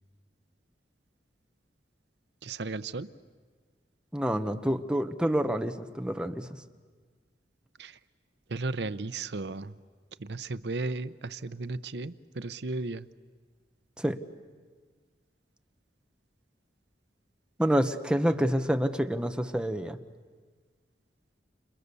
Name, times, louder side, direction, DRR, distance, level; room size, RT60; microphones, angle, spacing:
voice 1, 2.4-3.1 7.8-8.0 8.5-9.7 10.2-13.1, right 3 dB, 70° right, 14 dB, 0.8 m, -35 dB
voice 2, 4.1-6.5 14.0-14.2 17.6-20.0, equal, 5° right, 7 dB, 1.1 m, -27 dB
30.0 x 28.5 x 7.0 m, 1.5 s
head